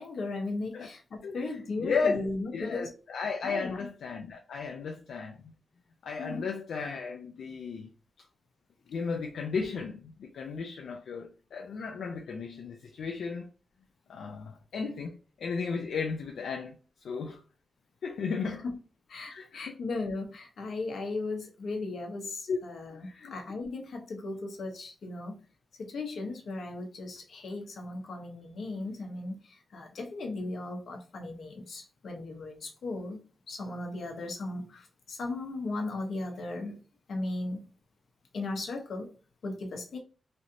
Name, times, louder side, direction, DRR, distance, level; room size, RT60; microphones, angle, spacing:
voice 1, 0.0-2.9 3.4-3.9 6.2-6.5 18.4-18.8 19.1-25.4 25.8-36.8 37.1-37.7 38.3-39.1 39.4-40.0, left 2 dB, 70° left, 0.8 m, -37 dB
voice 2, 1.8-2.2 2.5-5.4 6.0-7.9 8.9-13.5 14.1-16.8 17.0-17.4 18.0-18.6 19.3-19.7 22.5-22.6 23.0-23.3, left 5 dB, 85° left, 0.4 m, -34 dB
3.1 x 2.7 x 2.5 m
wide cardioid pair, 105°, 0 cm